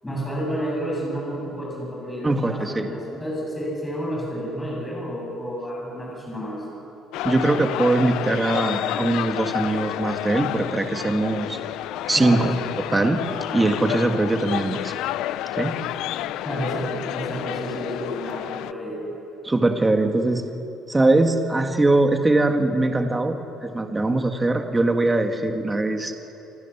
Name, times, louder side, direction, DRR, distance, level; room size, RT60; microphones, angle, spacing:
voice 1, 0.0-6.6 12.2-12.5 16.4-19.0, equal, 10° left, -4 dB, 7.8 m, -30 dB
voice 2, 2.2-2.9 7.2-11.6 12.1-13.2 13.5-14.9 15.6-15.8 19.4-20.4 20.9-26.1, right 2 dB, 10° right, 5 dB, 1.7 m, -21 dB
sound 1, 7.1-18.7, left 14 dB, 75° left, 0.5 m, -30 dB
28.5 x 27.5 x 7.2 m, 2.9 s
cardioid pair, 160°, 0 cm